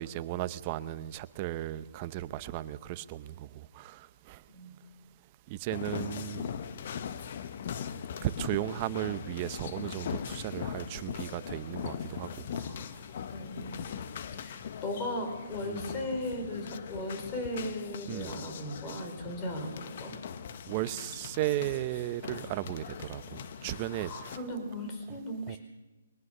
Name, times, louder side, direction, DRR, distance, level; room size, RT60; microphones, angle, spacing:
voice 1, 0.0-4.4 5.5-6.5 8.2-13.0 15.6-15.9 18.1-18.4 20.7-24.4 25.1-25.2 25.5-25.6, right 14 dB, 30° right, 0.8 m, -36 dB
voice 2, 4.5-4.8 13.3-14.0 14.3-20.1 23.9-25.6, left 1 dB, 20° left, 4.8 m, -37 dB
sound 1, 5.7-24.4, left 8 dB, 45° left, 1.0 m, -40 dB
22.0 x 19.0 x 6.7 m
hypercardioid pair, 155°, 0 cm